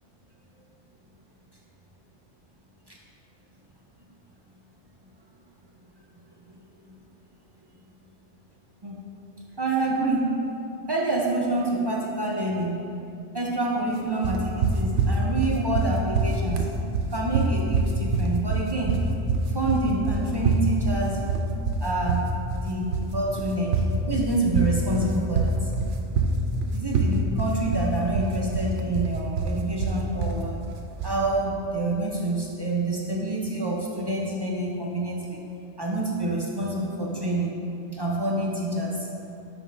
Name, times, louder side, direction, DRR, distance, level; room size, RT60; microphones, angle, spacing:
voice 1, 9.6-10.4 10.9-12.8 13.3-16.7 17.1-19.0 19.5-21.2 21.8-22.3 22.5-23.7 24.0-25.7 26.7-30.6 31.0-35.4 35.8-37.5 37.9-39.1, right 2 dB, 45° right, -3 dB, 0.3 m, -27 dB
sound 1, 14.2-31.2, right 3 dB, 75° right, 0.9 m, -25 dB
6.0 x 3.5 x 5.2 m, 2.7 s
omnidirectional pair, 1.2 m